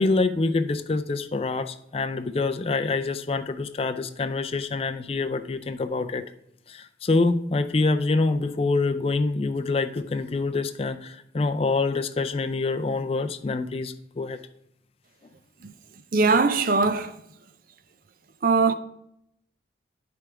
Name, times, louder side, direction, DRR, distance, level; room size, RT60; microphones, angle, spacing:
voice 1, 0.0-6.2 6.7-14.4, left 3 dB, 35° left, 0.4 m, -26 dB
voice 2, 16.1-17.1 18.4-18.7, right 4 dB, 50° right, 0.6 m, -21 dB
9.6 x 3.5 x 4.5 m
head